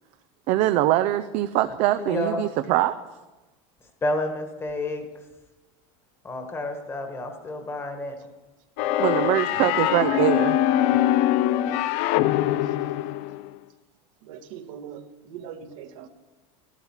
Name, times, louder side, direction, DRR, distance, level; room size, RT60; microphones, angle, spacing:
voice 1, 0.5-3.0 9.0-10.6, right 14 dB, 40° right, 10 dB, 0.5 m, -23 dB
voice 2, 2.0-2.5 4.0-5.1 6.2-8.2, left 2 dB, 15° left, 5 dB, 1.5 m, -30 dB
sound 1, 8.8-13.5, left 13 dB, 45° left, 0.5 m, -23 dB
Piano, 9.5-10.3, right 12 dB, 60° right, 1.4 m, -38 dB
voice 3, 14.2-16.1, right 8 dB, 75° right, 5 dB, 1.8 m, -41 dB
15.0 x 12.0 x 7.3 m, 1.2 s
cardioid pair, 175°, 16 cm